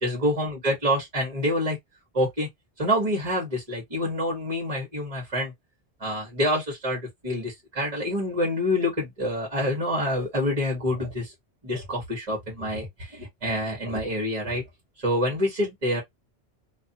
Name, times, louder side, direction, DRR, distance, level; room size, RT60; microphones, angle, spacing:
voice 1, 0.0-1.8 2.1-2.5 2.8-5.5 6.0-11.3 11.6-14.6 15.0-16.0, left 1 dB, 35° right, 1.2 m, -27 dB
2.6 x 2.5 x 2.6 m
omnidirectional pair, 1.1 m